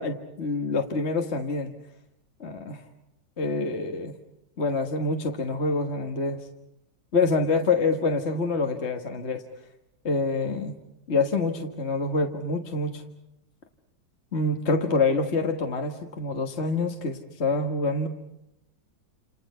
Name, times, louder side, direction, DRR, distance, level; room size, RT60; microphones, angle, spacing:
voice 1, 0.0-1.7 2.4-2.8 3.4-4.1 4.6-6.5 7.1-9.4 10.0-10.7 11.1-13.0 14.3-18.1, left 3 dB, 40° left, 4 dB, 1.7 m, -26 dB
29.0 x 28.5 x 5.6 m, 0.82 s
omnidirectional pair, 1.9 m